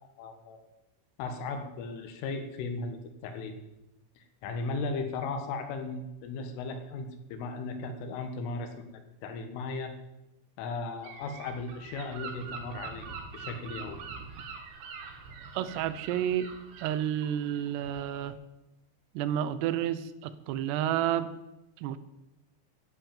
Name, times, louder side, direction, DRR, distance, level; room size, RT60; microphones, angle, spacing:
voice 1, 0.2-0.6 1.2-3.6 4.2-8.9 9.2-9.9 10.6-13.1 13.3-14.0, left 3 dB, 80° left, 6 dB, 4.1 m, -36 dB
Gull seagull / Wind, 11.0-18.3, right 5 dB, 60° right, 3.5 m, -44 dB
voice 2, 15.5-16.5 16.8-18.4 19.1-21.3 21.8-22.0, right 10 dB, 75° right, 13 dB, 2.6 m, -30 dB
11.0 x 10.5 x 9.3 m, 0.94 s
omnidirectional pair, 5.6 m